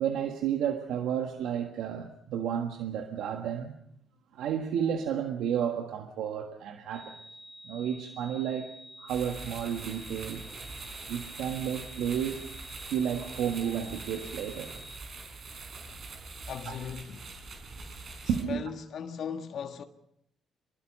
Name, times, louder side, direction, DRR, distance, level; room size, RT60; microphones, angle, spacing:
voice 1, 0.0-3.7 4.3-7.1 7.6-8.7 9.0-10.4 11.1-12.5 12.9-14.8 16.7-16.8 18.3-18.6, right 8 dB, 85° right, 1.6 m, -32 dB
sound 1, 6.9-15.0, equal, 10° right, 7.4 m, -49 dB
sound 2, 9.1-18.4, right 3 dB, 50° right, 4.9 m, -43 dB
voice 2, 16.5-17.4 18.4-19.8, left 7 dB, 65° left, 1.6 m, -38 dB
24.5 x 21.0 x 5.5 m
cardioid pair, 90°, 0 cm